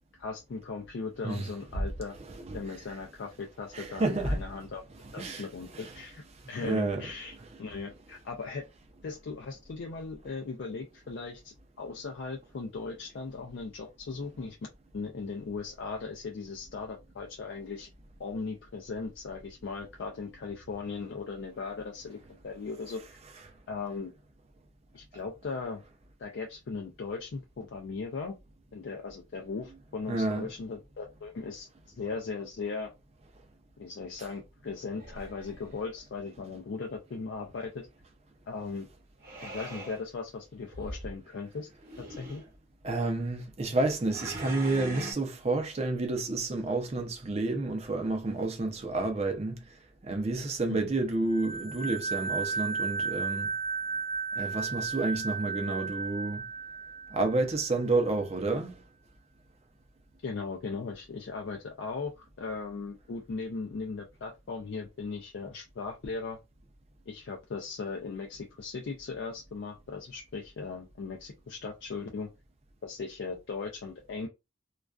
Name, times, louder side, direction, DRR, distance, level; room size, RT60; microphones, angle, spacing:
voice 1, 0.1-2.2 2.5-4.8 5.1-8.7 9.0-14.6 14.9-17.9 18.2-23.2 23.7-24.1 24.9-25.8 26.2-28.4 28.7-32.9 33.8-37.9 38.5-38.9 39.4-41.7 42.2-42.4 50.7-50.9 60.2-66.4 67.1-72.3 72.8-74.3, left 4 dB, 60° left, 0.4 m, -38 dB
voice 2, 2.3-2.8 3.7-4.4 5.2-5.5 5.7-6.0 6.6-7.1 25.1-25.2 30.1-30.5 42.8-49.8 50.0-53.5 54.4-56.4 57.1-58.8, right 2 dB, 35° right, 0.5 m, -30 dB
sound 1, 35.0-35.8 39.2-40.0 40.7-41.1 41.8-42.5 44.1-45.1, right 1 dB, 50° right, 0.9 m, -41 dB
sound 2, 51.3-57.8, right 5 dB, 30° left, 0.9 m, -34 dB
2.3 x 2.2 x 2.3 m
head